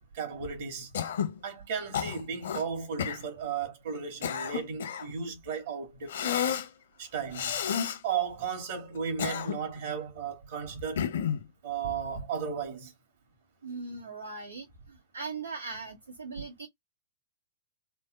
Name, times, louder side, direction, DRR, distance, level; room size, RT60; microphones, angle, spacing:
voice 1, 0.1-0.9 1.4-6.4 7.0-7.6 8.0-11.1 11.6-12.9, right 6 dB, 60° right, 1.8 m, -35 dB
Cough, 0.9-1.4 1.9-2.6 3.0-3.2 3.9-5.1 6.1-6.7 7.3-8.0 8.9-9.8 11.0-11.4, left 8 dB, 75° left, 0.8 m, -31 dB
voice 2, 13.6-16.7, right 4 dB, 90° right, 1.3 m, -40 dB
4.2 x 2.1 x 2.4 m
hypercardioid pair, 110°, 0 cm